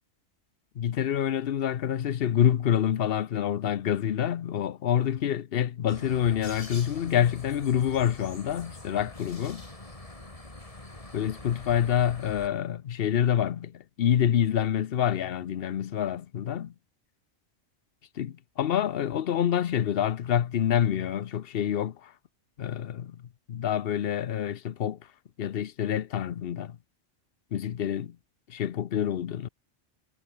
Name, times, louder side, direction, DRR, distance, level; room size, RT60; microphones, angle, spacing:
voice 1, 0.8-9.7 11.1-16.7 18.2-22.1 22.6-23.2 23.5-25.0 25.4-26.8 27.5-28.2 28.5-29.5, left 9 dB, 60° left, 0.9 m, -27 dB
sound 1, 5.9-12.5, left 2 dB, 30° left, 3.0 m, -44 dB
omnidirectional pair, 1.2 m